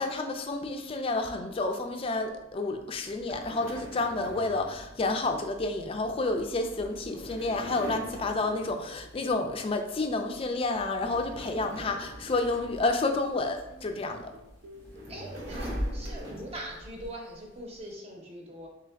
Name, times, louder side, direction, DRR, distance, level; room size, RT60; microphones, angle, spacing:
voice 1, 0.0-14.3, left 2 dB, 30° left, 5 dB, 0.4 m, -30 dB
sound 1, 3.0-9.6 9.9-10.2 10.6-13.6 14.4-16.9, equal, 80° right, 1.0 m, -45 dB
sound 2, 7.1-17.9, equal, 10° left, 0.8 m, -42 dB
sound 3, 13.0-13.3 13.7-15.9 16.2-16.8, equal, 60° right, 0.5 m, -51 dB
voice 2, 15.1-18.7, right 1 dB, 30° right, -1 dB, 0.8 m, -42 dB
3.7 x 3.5 x 3.3 m, 0.91 s
head